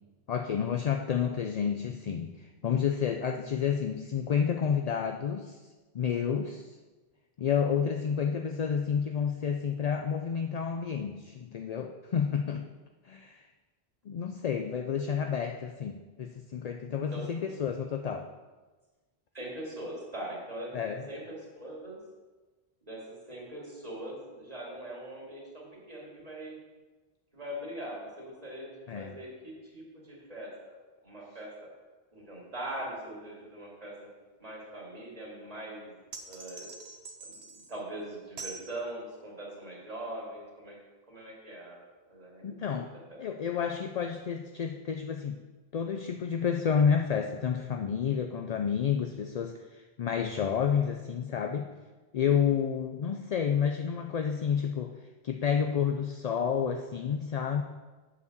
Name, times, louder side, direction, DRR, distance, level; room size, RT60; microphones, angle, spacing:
voice 1, 0.3-5.6 5.9-6.7 7.4-12.6 13.1-13.4 14.1-18.3 20.7-21.0 28.9-29.2 42.4-42.9 43.2-45.4 45.7-51.7 52.1-54.9 55.2-57.6, left 7 dB, 55° left, 5 dB, 0.5 m, -30 dB
voice 2, 17.1-17.5 19.3-22.0 22.8-26.6 27.3-30.8 31.0-31.5 32.1-33.9 34.4-36.7 37.2-40.8 41.1-42.8 43.1-43.5, right 1 dB, 35° right, -5 dB, 2.7 m, -42 dB
sound 1, 36.1-37.8 38.4-38.7, right 4 dB, 70° right, 1.1 m, -44 dB
8.1 x 5.0 x 6.7 m, 1.3 s
omnidirectional pair, 1.1 m